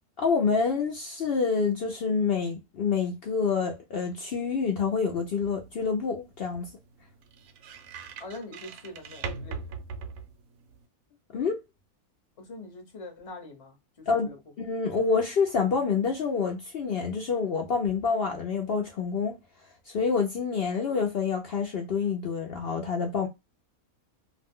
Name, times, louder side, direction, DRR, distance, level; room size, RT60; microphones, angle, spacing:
voice 1, 0.2-6.7 11.3-11.6 14.1-14.3 14.6-19.3 19.9-23.3, left 5 dB, 70° left, 0.5 m, -27 dB
sound 1, 4.6-10.9, right 5 dB, 70° right, 0.9 m, -42 dB
voice 2, 8.2-9.7 12.4-14.4, left 2 dB, 30° left, 0.7 m, -43 dB
2.5 x 2.1 x 3.5 m
omnidirectional pair, 1.6 m